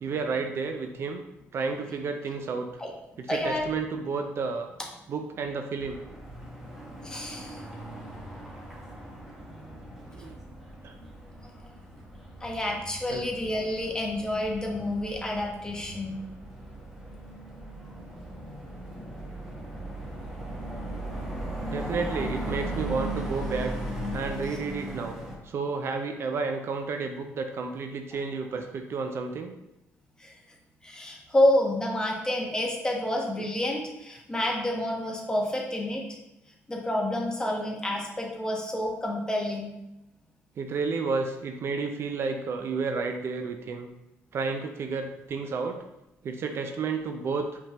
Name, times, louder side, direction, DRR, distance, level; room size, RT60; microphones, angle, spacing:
voice 1, 0.0-1.2 1.5-2.7 3.2-4.7 5.1-6.0 10.1-10.3 10.8-11.0 13.1-13.3 21.7-23.7 24.1-25.2 25.4-29.5 40.6-43.9 44.3-45.8 46.2-47.6, right 4 dB, 50° right, 5 dB, 0.4 m, -31 dB
voice 2, 3.3-3.6 7.0-7.6 12.4-16.2 30.2-30.3 30.8-36.0 36.7-39.7, left 1 dB, 15° left, 0 dB, 1.1 m, -28 dB
sound 1, 5.8-25.4, right 1 dB, 5° right, 1.2 m, -38 dB
5.0 x 3.5 x 2.9 m, 0.91 s
cardioid pair, 85°, 5 cm